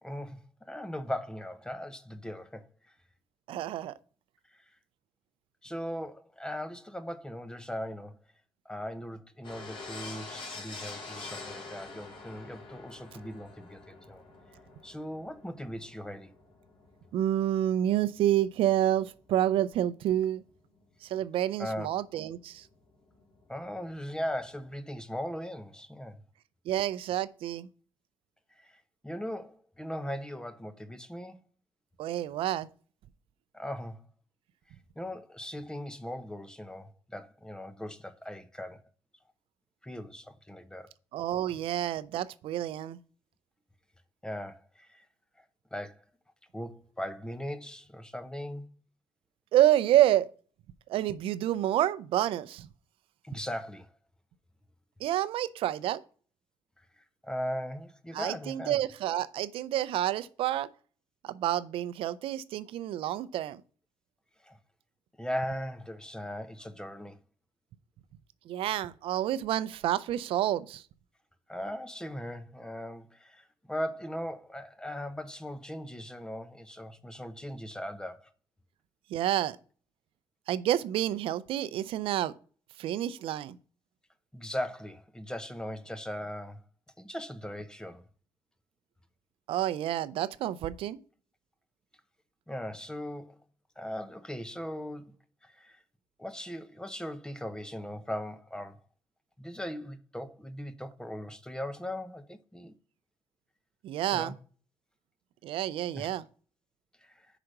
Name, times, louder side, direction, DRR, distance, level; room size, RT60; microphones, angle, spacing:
voice 1, 0.0-2.7 5.6-8.2 8.6-14.2 14.8-16.3 21.6-21.9 23.5-26.2 28.6-28.7 29.0-31.4 33.5-34.0 35.0-38.8 39.8-40.9 44.2-45.0 45.7-46.0 46.5-48.7 53.2-53.9 57.2-58.8 64.4-64.6 65.2-67.2 71.5-78.3 84.3-86.6 87.0-88.0 92.5-93.4 93.8-95.1 95.4-95.8 96.2-98.8 99.4-102.7 104.1-104.3 105.9-106.1 107.0-107.3, equal, 10° left, 0.9 m, -39 dB
voice 2, 3.5-3.9 17.1-20.4 21.0-22.7 26.7-27.7 32.0-32.7 41.1-43.0 49.5-50.3 50.9-52.7 55.0-56.0 58.1-60.7 61.2-63.6 68.5-70.8 79.1-79.6 80.5-82.3 82.8-83.6 89.5-91.0 103.8-104.3 105.4-106.2, right 12 dB, 80° right, 0.5 m, -28 dB
sound 1, 9.4-19.2 19.4-19.5 19.7-19.8 22.4-22.5 22.6-22.7 22.9-24.7, left 3 dB, 65° left, 2.5 m, -46 dB
5.8 x 5.0 x 6.6 m
cardioid pair, 90°, 9 cm